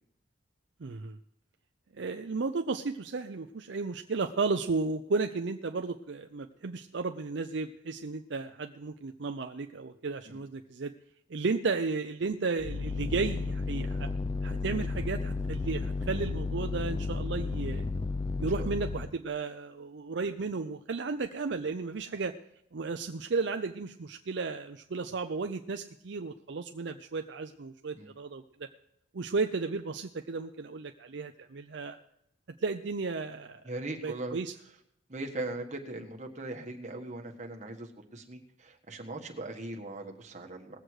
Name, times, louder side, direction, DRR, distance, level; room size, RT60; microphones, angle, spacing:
voice 1, 0.8-1.2 1.9-10.9 11.3-14.1 14.4-17.8 18.4-22.3 22.7-28.7 29.1-32.0 32.6-33.6 34.0-34.5, right 4 dB, 60° right, 6 dB, 0.5 m, -34 dB
sound 1, 12.6-19.2, left 3 dB, 25° left, 0.4 m, -33 dB
voice 2, 33.6-34.4 35.1-40.8, right 2 dB, 35° right, 1 dB, 1.5 m, -40 dB
19.5 x 7.8 x 4.8 m, 0.76 s
head